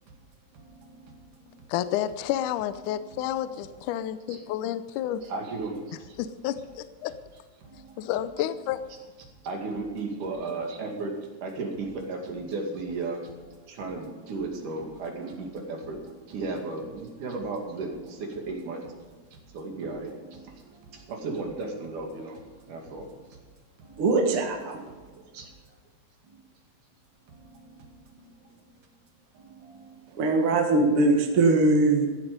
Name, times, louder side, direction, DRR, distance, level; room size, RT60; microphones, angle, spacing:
voice 1, 0.5-2.0 2.6-3.6 3.8-4.0 4.3-4.5 5.1-7.1 7.3-11.1 11.4-19.2 19.5-23.4 23.8-25.5 26.3-26.4 27.3-28.6 29.3-30.6 31.2-31.7, right 3 dB, 65° right, 1 dB, 3.8 m, -37 dB
voice 2, 1.7-5.2 6.2-7.1 8.0-8.9, left 11 dB, 75° left, 12 dB, 2.0 m, -30 dB
voice 3, 24.0-24.8 30.2-32.1, right 2 dB, 45° right, 2 dB, 2.3 m, -21 dB
15.0 x 12.0 x 5.3 m, 1.4 s
omnidirectional pair, 3.9 m